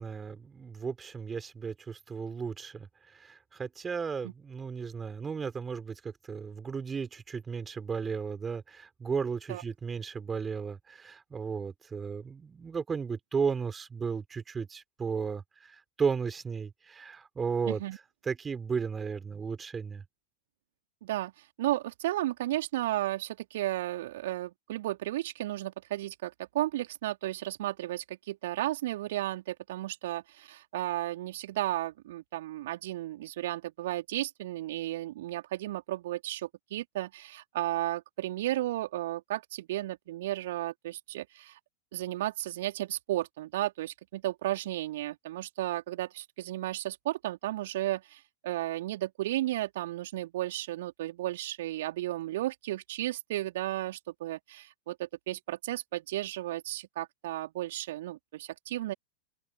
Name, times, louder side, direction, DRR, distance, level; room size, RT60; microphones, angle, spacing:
voice 1, 0.0-20.0, right 5 dB, 15° right, 5.2 m, -35 dB
voice 2, 17.7-18.0 21.0-41.6 41.9-58.9, right 15 dB, 55° right, 3.1 m, -34 dB
figure-of-eight pair, 90°, 0 cm